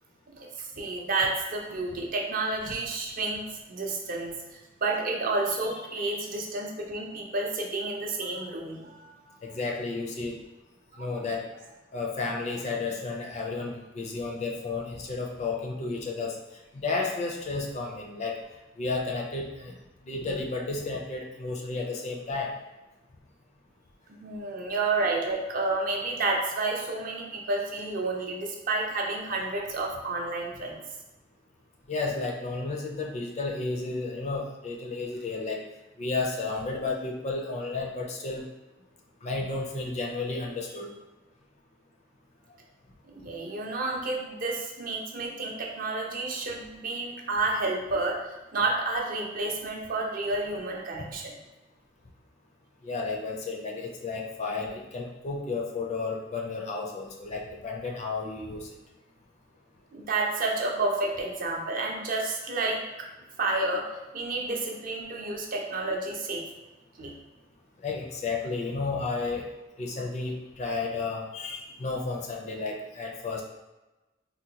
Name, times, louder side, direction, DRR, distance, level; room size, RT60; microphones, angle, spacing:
voice 1, 0.3-9.4 11.0-11.1 24.1-30.8 43.1-48.2 48.5-51.4 59.9-62.8 63.4-63.9 64.1-66.4 67.0-67.1, right 3 dB, 45° right, 0 dB, 0.5 m, -30 dB
voice 2, 5.9-6.2 9.4-10.4 11.0-11.5 11.9-16.4 16.7-18.4 18.8-19.7 20.0-22.5 31.9-35.6 36.0-38.5 39.2-40.9 51.0-51.1 52.8-58.7 67.8-69.5 69.8-73.4, left 3 dB, 35° left, 0 dB, 0.4 m, -32 dB
3.8 x 2.1 x 2.8 m, 1.1 s
head